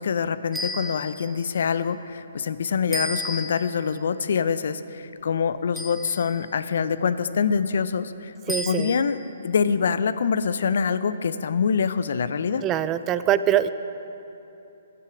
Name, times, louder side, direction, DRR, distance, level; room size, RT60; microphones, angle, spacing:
voice 1, 0.0-12.6, left 6 dB, 60° left, 14 dB, 0.5 m, -25 dB
sound 1, 0.5-1.4 2.9-3.8 5.8-6.5 8.5-9.2, left 1 dB, ahead, 1.2 m, -33 dB
voice 2, 8.5-9.0 12.6-13.7, right 11 dB, 20° right, 14 dB, 0.3 m, -23 dB
14.5 x 11.5 x 4.9 m, 2.9 s
figure-of-eight pair, 130°, 0 cm